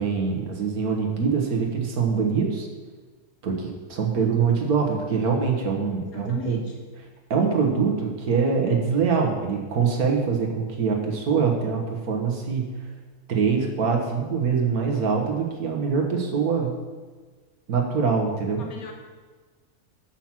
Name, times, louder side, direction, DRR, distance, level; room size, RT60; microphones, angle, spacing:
voice 1, 0.0-2.7 3.4-6.6 7.3-12.7 13.3-16.7 17.7-18.7, right 5 dB, 80° right, 1 dB, 1.6 m, -24 dB
voice 2, 4.0-4.3 6.1-6.7 18.6-18.9, left 4 dB, 75° left, 3 dB, 1.2 m, -38 dB
7.3 x 5.9 x 5.9 m, 1.4 s
omnidirectional pair, 1.6 m